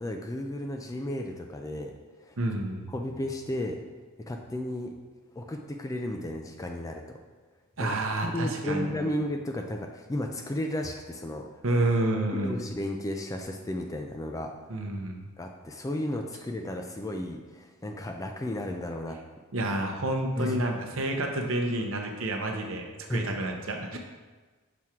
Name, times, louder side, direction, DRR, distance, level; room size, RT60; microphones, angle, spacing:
voice 1, 0.0-1.9 2.2-2.4 2.9-3.8 4.3-4.9 5.4-7.2 7.8-11.5 12.3-14.5 15.4-19.2 20.4-20.6 23.1-23.3, left 1 dB, 15° left, 4 dB, 0.3 m, -33 dB
voice 2, 2.4-2.9 7.8-9.1 11.6-12.6 14.7-15.2 19.5-24.0, right 1 dB, 60° right, 3 dB, 0.7 m, -29 dB
6.0 x 3.5 x 4.4 m, 1.3 s
head